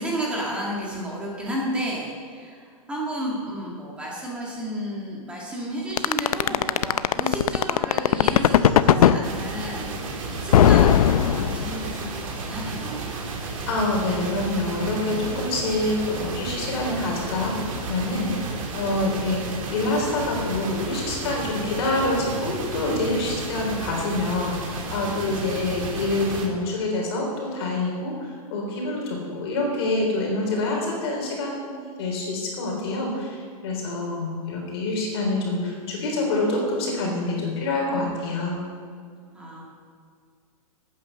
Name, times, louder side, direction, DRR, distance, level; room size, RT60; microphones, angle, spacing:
voice 1, 0.0-13.2 18.9-19.2 39.3-39.6, right 1 dB, 5° right, -4 dB, 1.7 m, -32 dB
sound 1, 6.0-9.2 10.5-11.9, left 10 dB, 75° left, 0.6 m, -16 dB
sound 2, 9.2-26.5, right 3 dB, 60° right, 2.5 m, -33 dB
voice 2, 13.7-19.4 19.7-38.6, left 2 dB, 45° left, -1 dB, 3.8 m, -26 dB
12.0 x 9.0 x 6.8 m, 2.1 s
supercardioid pair, 180°, 19 cm